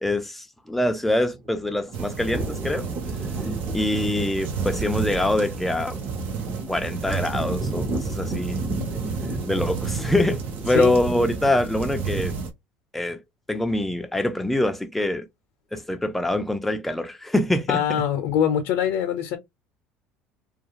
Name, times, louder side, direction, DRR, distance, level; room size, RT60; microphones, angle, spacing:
voice 1, 0.0-2.9 3.7-6.0 6.7-8.6 9.5-12.3 12.9-13.2 13.5-15.3 15.7-17.8, left 1 dB, 5° left, 0.5 m, -24 dB
sound 1, 1.3-11.7, right 2 dB, 25° right, 0.9 m, -34 dB
sound 2, 1.9-12.5, right 5 dB, 55° right, 0.7 m, -31 dB
voice 2, 17.7-19.4, left 9 dB, 75° left, 0.6 m, -23 dB
2.4 x 2.3 x 2.8 m
cardioid pair, 120°, 4 cm